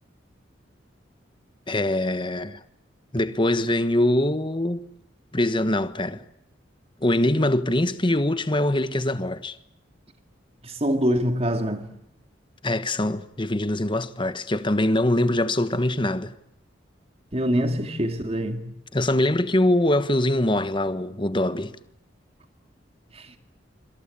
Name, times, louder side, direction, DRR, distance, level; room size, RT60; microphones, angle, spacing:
voice 1, 1.7-2.6 3.1-4.9 5.3-6.2 7.0-9.6 12.6-16.3 18.9-21.7, left 1 dB, 25° left, 1.3 m, -23 dB
voice 2, 10.6-11.8 17.3-18.6, equal, 30° right, 2.5 m, -24 dB
26.0 x 25.5 x 8.7 m
head